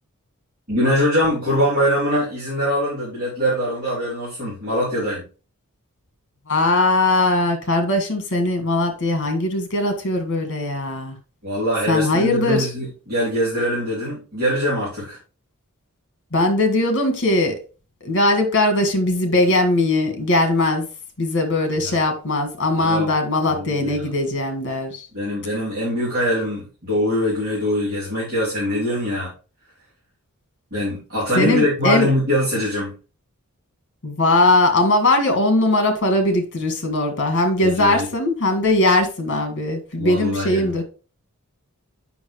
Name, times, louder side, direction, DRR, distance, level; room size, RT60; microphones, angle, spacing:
voice 1, 0.7-5.3 11.4-15.2 21.8-22.0 22.8-23.1 23.5-24.0 25.1-29.3 30.7-32.9 37.6-38.1 40.0-40.8, equal, 45° right, 3.3 m, -23 dB
voice 2, 6.5-11.2 11.9-12.7 16.3-17.6 18.0-20.9 21.2-25.1 31.4-32.1 34.0-40.8, left 2 dB, 55° left, 1.7 m, -20 dB
7.1 x 5.8 x 3.1 m
head